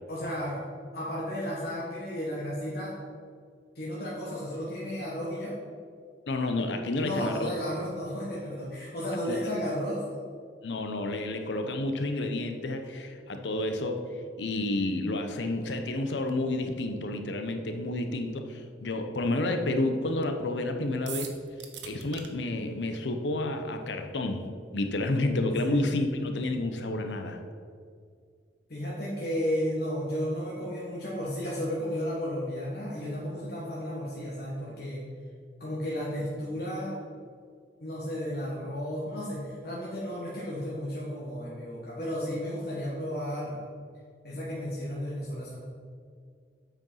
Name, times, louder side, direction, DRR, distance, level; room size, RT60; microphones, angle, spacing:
voice 1, 0.1-0.6 0.9-3.0 3.7-5.5 7.0-10.0 25.6-25.9 28.7-35.0 35.6-36.9 37.8-43.6 44.2-45.6, equal, 60° left, -7 dB, 1.5 m, -33 dB
voice 2, 6.3-7.5 9.3-9.4 10.6-14.0 14.4-21.3 21.9-24.5 24.7-27.4, left 2 dB, 85° left, 6 dB, 0.8 m, -30 dB
sound 1, 21.1-22.3, right 8 dB, 90° right, 0.9 m, -40 dB
7.8 x 5.1 x 5.5 m, 2.1 s
head